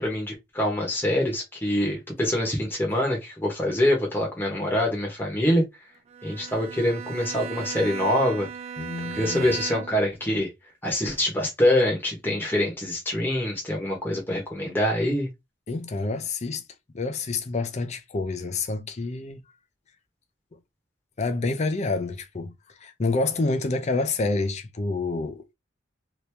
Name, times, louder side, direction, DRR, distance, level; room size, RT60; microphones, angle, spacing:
voice 1, 0.0-5.6 6.2-8.5 9.1-10.5 10.8-15.3, left 1 dB, 10° left, 1.0 m, -25 dB
Bowed string instrument, 6.1-10.2, right 7 dB, 35° right, 0.3 m, -37 dB
voice 2, 8.8-9.5 15.7-16.6 16.9-19.4 21.2-22.5 22.8-25.4, left 3 dB, 35° left, 0.5 m, -28 dB
3.0 x 2.7 x 3.3 m
head